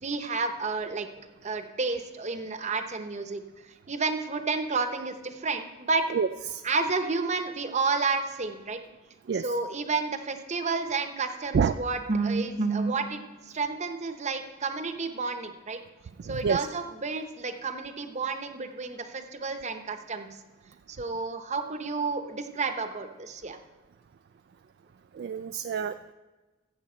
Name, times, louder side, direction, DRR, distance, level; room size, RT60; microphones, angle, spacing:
voice 1, 0.0-3.4 3.9-6.1 6.6-8.8 9.3-13.2 13.5-15.8 16.2-20.3 20.9-23.6, right 4 dB, 35° right, 8 dB, 0.8 m, -30 dB
voice 2, 6.1-6.6 9.3-9.4 11.5-11.7 16.3-16.6 25.2-25.9, right 6 dB, 50° right, 9 dB, 0.3 m, -27 dB
15.0 x 7.3 x 4.4 m, 1.2 s
head